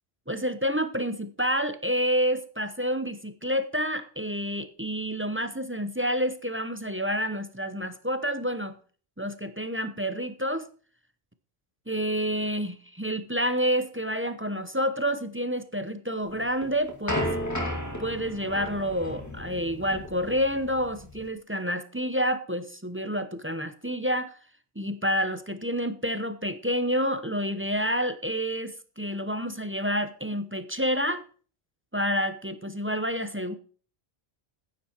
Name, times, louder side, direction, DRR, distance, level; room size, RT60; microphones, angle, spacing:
voice 1, 0.3-8.8 9.2-10.7 11.9-17.3 18.0-24.4 24.8-31.2 31.9-33.5, equal, 15° right, 10 dB, 0.7 m, -29 dB
sound 1, 16.3-21.3, left 1 dB, 15° left, 2.4 m, -34 dB
10.5 x 10.0 x 4.5 m, 0.41 s
omnidirectional pair, 1.1 m